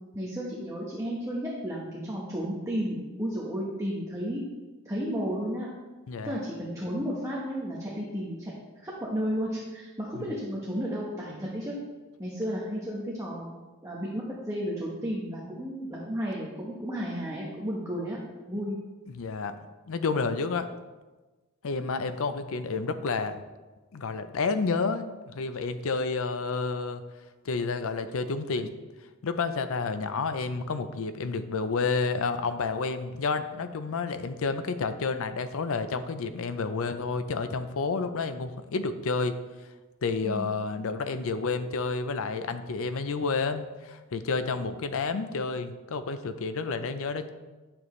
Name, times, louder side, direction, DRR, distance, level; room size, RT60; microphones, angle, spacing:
voice 1, 0.1-4.4 4.8-5.7 6.2-11.7 12.2-13.5 13.8-18.2 18.5-18.8 40.2-40.6, equal, 15° right, -4 dB, 1.0 m, -33 dB
voice 2, 6.1-6.4 10.1-10.2 19.1-19.5 19.9-20.7 21.6-23.4 23.9-27.0 27.4-28.7 29.2-39.3 40.0-47.3, left 4 dB, 70° left, 10 dB, 0.5 m, -30 dB
8.7 x 6.8 x 3.2 m, 1.2 s
head